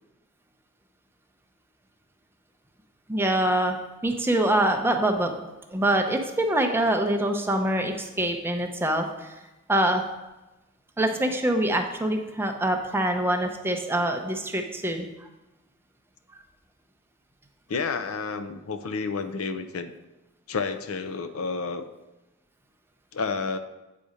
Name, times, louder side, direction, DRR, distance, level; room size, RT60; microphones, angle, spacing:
voice 1, 3.1-3.8 4.0-5.3 5.7-9.4 9.7-10.0 11.0-15.3 16.3-16.4, right 1 dB, 10° right, 4 dB, 0.6 m, -25 dB
voice 2, 17.7-19.9 20.5-21.9 23.1-23.6, left 4 dB, 70° left, 10 dB, 0.6 m, -30 dB
8.5 x 4.1 x 5.0 m, 1.0 s
head